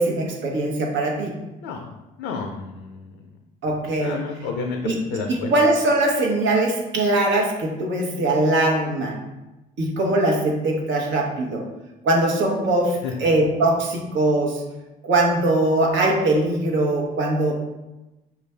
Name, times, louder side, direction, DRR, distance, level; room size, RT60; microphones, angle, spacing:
voice 1, 0.0-1.4 3.6-4.2 4.8-5.0 5.3-9.1 9.8-11.6 12.0-14.6 15.0-17.6, right 2 dB, 75° right, 0 dB, 1.0 m, -21 dB
voice 2, 1.6-1.9 2.2-3.3 4.0-4.8 5.1-5.5 13.0-13.1, left 5 dB, 80° left, 3 dB, 0.5 m, -31 dB
4.6 x 2.5 x 3.3 m, 1.0 s
hypercardioid pair, 55°, 20 cm